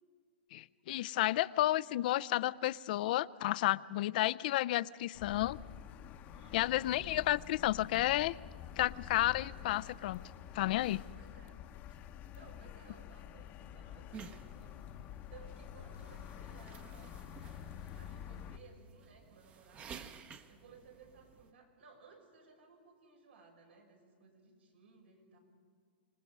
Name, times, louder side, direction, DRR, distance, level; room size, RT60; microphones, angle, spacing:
voice 1, 0.5-5.6 6.5-8.3 8.8-10.2 10.5-11.0, left 15 dB, 55° left, 17 dB, 0.4 m, -32 dB
voice 2, 4.1-4.4 6.3-6.9 9.3-9.6 11.1-11.6 12.3-14.8 15.3-17.2 17.9-20.0 20.5-25.4, right 4 dB, 90° right, 0 dB, 6.1 m, -60 dB
sound 1, 5.1-18.6, left 10 dB, 30° left, 0.8 m, -48 dB
sound 2, 14.1-21.5, right 6 dB, 20° right, 0.8 m, -54 dB
26.0 x 19.0 x 5.4 m, 2.1 s
hypercardioid pair, 145°, 6 cm